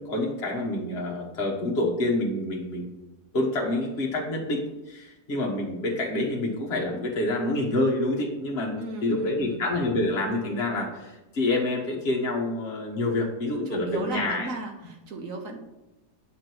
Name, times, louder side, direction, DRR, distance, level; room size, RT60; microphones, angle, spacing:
voice 1, 0.0-2.9 3.3-14.5, left 2 dB, 40° left, -2 dB, 1.7 m, -27 dB
voice 2, 8.8-9.6 13.7-15.6, right 2 dB, 60° right, 3 dB, 1.4 m, -35 dB
8.7 x 3.8 x 6.2 m, 1.0 s
omnidirectional pair, 1.7 m